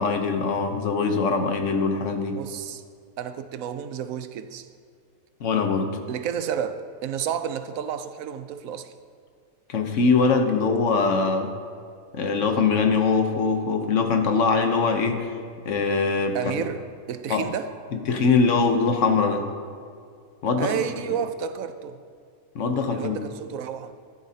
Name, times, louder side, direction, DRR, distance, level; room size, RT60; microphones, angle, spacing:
voice 1, 0.0-2.4 5.4-6.0 9.7-11.5 12.1-15.3 15.6-16.4 17.3-17.4 17.9-19.5 20.4-20.7 22.5-23.2, left 4 dB, 65° left, 1.2 m, -22 dB
voice 2, 2.4-2.8 3.2-4.7 6.1-8.9 16.3-17.7 20.6-22.0 22.9-24.0, right 8 dB, 85° right, 1.0 m, -31 dB
13.0 x 11.0 x 2.8 m
omnidirectional pair, 1.4 m